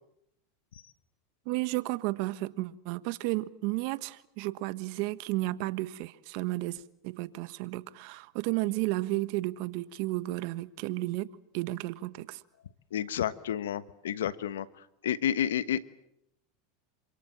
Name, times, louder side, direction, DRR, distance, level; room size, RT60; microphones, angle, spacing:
voice 1, 1.4-12.4, right 19 dB, 60° right, 1.3 m, -33 dB
voice 2, 12.9-14.7 15.0-15.8, left 10 dB, 85° left, 1.2 m, -30 dB
27.5 x 25.5 x 7.5 m
hypercardioid pair, 110°, 0 cm